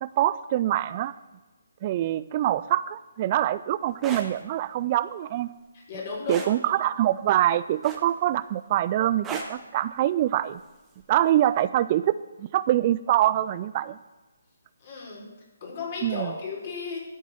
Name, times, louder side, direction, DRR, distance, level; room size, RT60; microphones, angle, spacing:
voice 1, 0.0-1.1 1.8-5.5 6.3-10.6 11.1-14.0 16.0-16.3, right 13 dB, 35° right, 15 dB, 0.4 m, -24 dB
sound 1, 3.9-4.3 6.3-6.6 7.8-8.3 9.2-9.6 11.0-11.2, right 4 dB, 10° right, 1.5 m, -35 dB
voice 2, 5.7-6.7 14.8-15.2 15.6-17.0, left 4 dB, 40° left, -2 dB, 5.1 m, -35 dB
13.0 x 7.2 x 7.1 m, 1.2 s
figure-of-eight pair, 145°, 0 cm